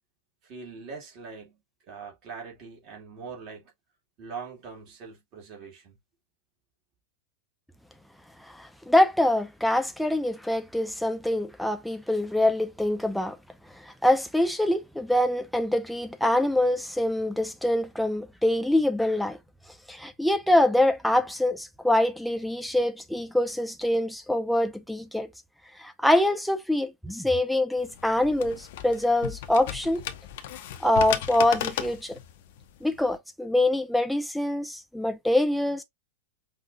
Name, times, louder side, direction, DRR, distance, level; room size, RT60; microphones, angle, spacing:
voice 1, 0.4-1.6 1.9-3.7 4.2-6.0, right 5 dB, 40° right, 2.3 m, -42 dB
voice 2, 8.6-13.3 14.0-19.4 19.9-25.3 25.8-30.0 30.8-32.2 32.8-35.8, left 1 dB, ahead, 0.7 m, -24 dB
sound 1, 27.8-33.2, left 10 dB, 55° left, 0.6 m, -36 dB
5.5 x 2.7 x 2.5 m
figure-of-eight pair, 90°, 0 cm